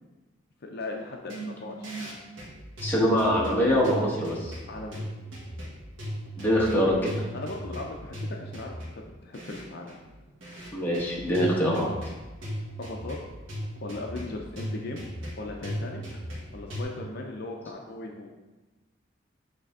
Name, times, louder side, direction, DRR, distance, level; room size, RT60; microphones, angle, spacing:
voice 1, 0.6-1.9 4.7-5.1 7.3-10.0 12.8-13.2 13.8-15.1 15.4-16.0 16.5-18.3, left 2 dB, 55° left, 1 dB, 0.5 m, -38 dB
sound 1, 1.3-16.8, equal, 75° right, 1.7 m, -37 dB
voice 2, 2.8-4.6 6.4-7.2 10.7-11.9, equal, 10° left, -5 dB, 1.2 m, -24 dB
8.1 x 3.3 x 3.6 m, 1.2 s
head